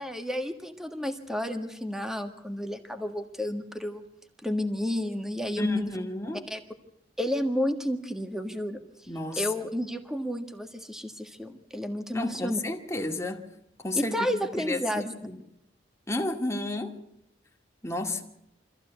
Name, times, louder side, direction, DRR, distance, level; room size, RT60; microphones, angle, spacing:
voice 1, 0.0-4.0 4.4-5.9 6.5-6.6 7.2-9.1 9.4-12.6 13.9-15.1, equal, 5° right, 1.6 m, -31 dB
voice 2, 5.6-6.5 9.1-9.5 12.1-13.4 13.8-15.4 16.1-17.0 17.8-18.2, left 2 dB, 15° left, 2.1 m, -32 dB
25.0 x 14.5 x 8.1 m
head